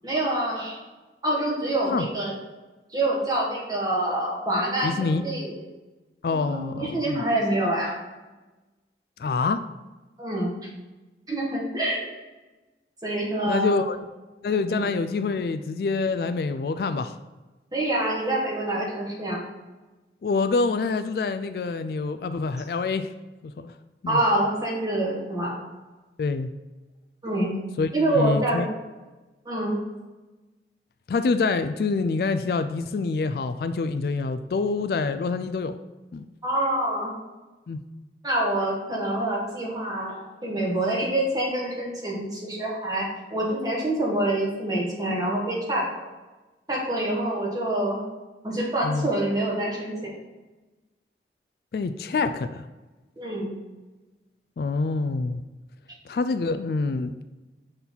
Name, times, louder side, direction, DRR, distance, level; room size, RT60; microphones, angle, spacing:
voice 1, 0.0-0.8 1.2-2.3 2.9-5.5 6.3-8.0 10.2-10.5 11.3-12.0 13.0-13.9 14.7-14.9 17.7-19.4 24.1-25.6 27.2-27.5 27.9-28.6 29.4-29.8 36.4-37.1 38.2-43.0 43.3-45.9 46.7-48.0 48.4-50.1 53.2-53.5, right 1 dB, 20° right, -3 dB, 1.6 m, -26 dB
voice 2, 4.8-5.2 6.2-7.2 9.2-9.7 13.5-14.0 14.4-17.2 20.2-23.1 23.4-23.7 24.0-24.2 26.2-26.5 27.8-28.7 31.1-35.8 36.1-36.3 37.7-37.8 48.8-49.1 51.7-52.7 54.6-55.4 56.1-57.1, left 4 dB, 60° left, 11 dB, 0.3 m, -26 dB
5.9 x 4.0 x 5.5 m, 1.1 s
head